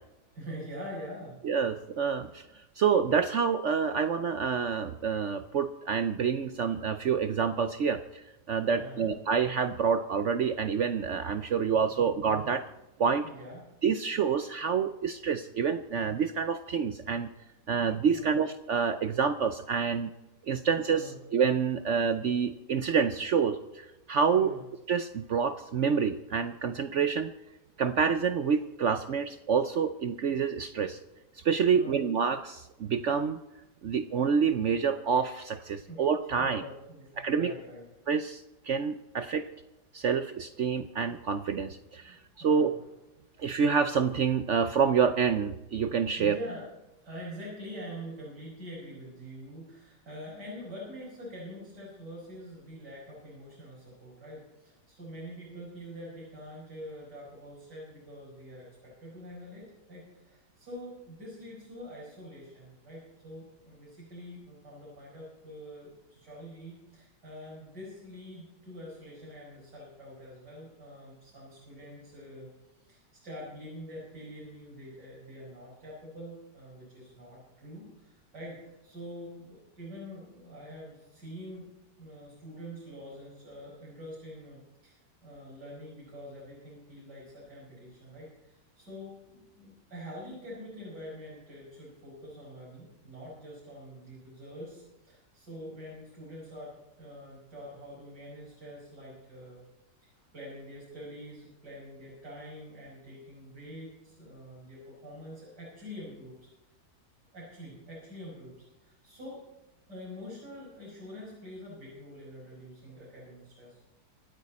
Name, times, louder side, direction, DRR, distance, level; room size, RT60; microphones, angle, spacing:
voice 1, 0.3-1.4 8.7-9.2 13.2-13.6 18.1-18.4 20.9-21.2 24.3-24.6 31.7-32.0 35.9-36.0 36.4-37.8 39.3-39.4 42.1-42.7 46.2-46.7 47.0-72.5 72.8-81.7 82.0-99.6 100.0-106.5 107.3-109.4 109.9-114.0, equal, 75° right, -7 dB, 6.1 m, -45 dB
voice 2, 1.4-2.5 2.8-12.6 13.0-13.2 13.8-17.3 17.7-20.1 20.5-24.5 24.9-27.3 27.8-31.0 31.4-33.4 33.8-36.6 37.2-37.5 38.1-39.5 39.9-42.7 43.4-46.4, right 6 dB, 60° right, 10 dB, 0.8 m, -27 dB
25.5 x 9.0 x 4.2 m, 0.97 s
omnidirectional pair, 1.8 m